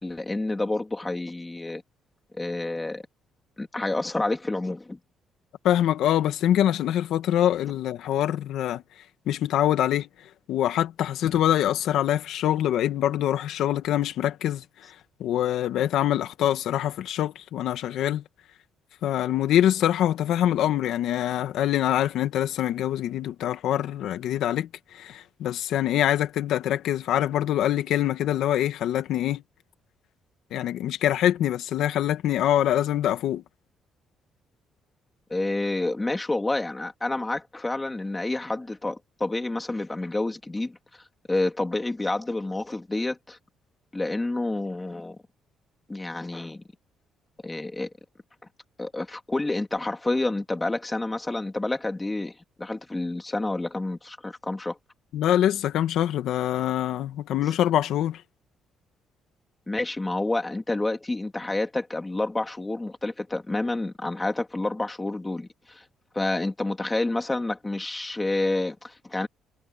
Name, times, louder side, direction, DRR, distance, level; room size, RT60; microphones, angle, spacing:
voice 1, 0.0-1.8 2.3-3.0 3.6-5.0 35.3-40.8 41.3-43.4 43.9-45.2 45.9-46.6 47.4-47.9 48.8-54.8 57.4-57.5 59.7-65.8 66.1-69.3, left 2 dB, 10° left, 3.2 m, -29 dB
voice 2, 5.6-8.8 9.3-10.1 10.5-14.6 15.2-18.2 19.0-24.7 24.9-29.4 30.5-33.4 55.1-58.2, left 11 dB, 75° left, 2.0 m, -24 dB
cardioid pair, 140°, 0 cm